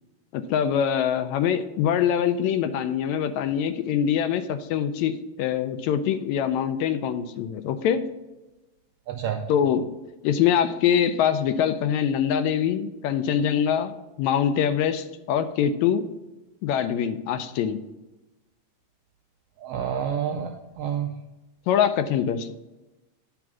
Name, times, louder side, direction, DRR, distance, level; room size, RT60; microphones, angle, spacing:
voice 1, 0.3-8.0 9.5-9.8 10.2-16.1 16.6-17.8 21.7-22.5, left 8 dB, 80° left, 9 dB, 1.8 m, -24 dB
voice 2, 9.1-9.5 19.6-21.1, right 8 dB, 80° right, 5 dB, 1.4 m, -29 dB
9.4 x 3.6 x 6.0 m, 1.1 s
omnidirectional pair, 3.3 m